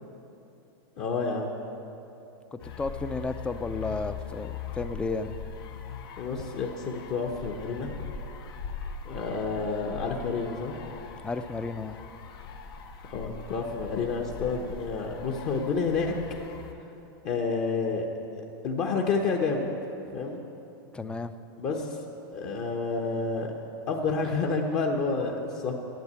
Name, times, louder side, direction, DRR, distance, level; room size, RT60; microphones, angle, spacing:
voice 1, 1.0-1.5 6.2-7.9 9.0-10.8 13.0-16.1 17.2-18.1 18.6-19.7 20.1-20.4 21.6-22.0 22.3-23.5 23.9-25.7, left 4 dB, 45° left, 1 dB, 1.0 m, -29 dB
voice 2, 2.5-5.4 11.2-11.9 20.9-21.3, left 3 dB, 10° left, 11 dB, 0.4 m, -33 dB
sound 1, 2.6-16.7, left 6 dB, 80° left, 1.1 m, -41 dB
10.5 x 8.1 x 8.2 m, 2.9 s
supercardioid pair, 135°, 12 cm